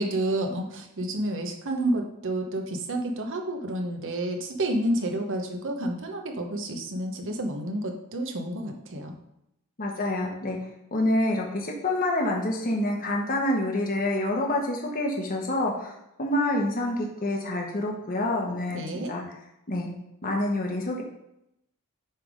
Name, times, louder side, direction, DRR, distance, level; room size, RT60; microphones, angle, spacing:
voice 1, 0.0-9.1 18.7-19.1, right 1 dB, 60° right, 4 dB, 1.0 m, -30 dB
voice 2, 9.8-19.2 19.7-19.9 20.2-21.0, left 1 dB, 40° left, 0 dB, 1.1 m, -27 dB
7.4 x 3.5 x 5.0 m, 0.82 s
head